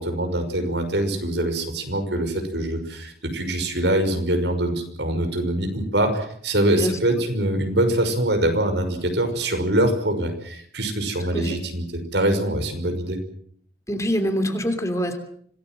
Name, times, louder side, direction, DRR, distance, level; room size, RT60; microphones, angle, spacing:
voice 1, 0.0-13.2, right 1 dB, 85° right, 7 dB, 5.9 m, -24 dB
voice 2, 6.8-7.2 11.3-11.6 13.9-15.2, equal, 15° left, 7 dB, 3.1 m, -25 dB
26.5 x 19.5 x 7.7 m, 0.63 s
head